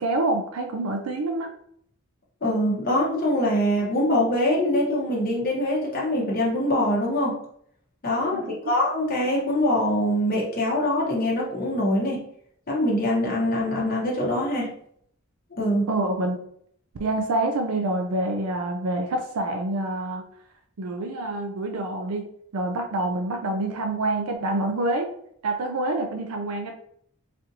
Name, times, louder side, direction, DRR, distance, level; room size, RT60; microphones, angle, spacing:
voice 1, 0.0-1.5 8.3-8.7 15.9-16.4 17.0-20.2 20.8-25.1 25.4-26.7, right 2 dB, 85° right, 3 dB, 0.5 m, -27 dB
voice 2, 2.4-7.4 8.0-12.2 12.7-14.7 15.5-15.9, left 1 dB, 40° left, -5 dB, 0.9 m, -23 dB
4.1 x 2.5 x 2.7 m, 0.67 s
head